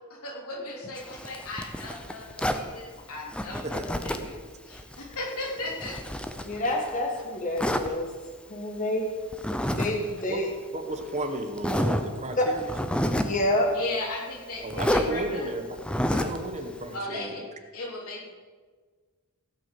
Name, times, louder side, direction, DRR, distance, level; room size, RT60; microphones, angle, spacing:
voice 1, 0.1-4.4 4.6-6.0 13.7-15.5 16.1-16.3 16.9-17.4 17.7-18.3, left 2 dB, 80° left, -2 dB, 3.4 m, -36 dB
Zipper (clothing), 1.0-2.7 3.3-4.4 4.7-7.0 7.6-7.9 9.3-9.9 10.2-10.3 11.0-11.1 11.6-12.1 12.6-13.4 14.7-15.1 15.8-16.4, equal, 5° left, 0.6 m, -29 dB
voice 2, 6.4-8.1 8.5-9.1 9.8-10.5 12.4-12.5 13.1-13.7, left 1 dB, 35° left, 1 dB, 1.3 m, -27 dB
voice 3, 10.7-12.7 14.6-15.8 16.1-17.5, right 1 dB, 30° right, 5 dB, 1.2 m, -33 dB
16.0 x 6.0 x 7.7 m, 1.5 s
head